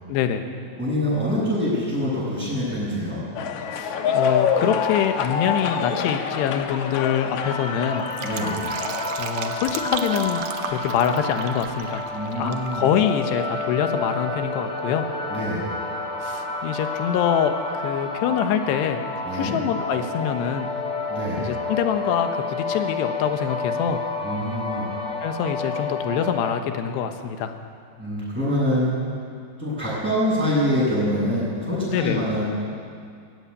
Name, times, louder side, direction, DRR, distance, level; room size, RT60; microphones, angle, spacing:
voice 1, 0.1-0.5 3.7-8.0 9.2-12.1 12.4-15.1 16.2-19.0 19.3-20.7 21.4-24.0 25.2-27.5 31.9-32.2, left 8 dB, 85° left, 7 dB, 3.3 m, -25 dB
voice 2, 0.8-3.2 8.2-8.6 12.1-12.8 15.3-15.6 19.2-19.6 21.1-21.4 24.2-24.8 28.0-29.0 29.6-32.5, equal, ahead, -11 dB, 6.7 m, -25 dB
sound 1, 3.4-9.1, left 6 dB, 65° left, 1.9 m, -26 dB
sound 2, 7.4-26.6, left 3 dB, 50° left, 0.8 m, -30 dB
Fill (with liquid), 7.9-12.7 13.0-13.1, right 7 dB, 75° right, 1.7 m, -35 dB
18.0 x 15.0 x 9.7 m, 2.3 s
omnidirectional pair, 4.8 m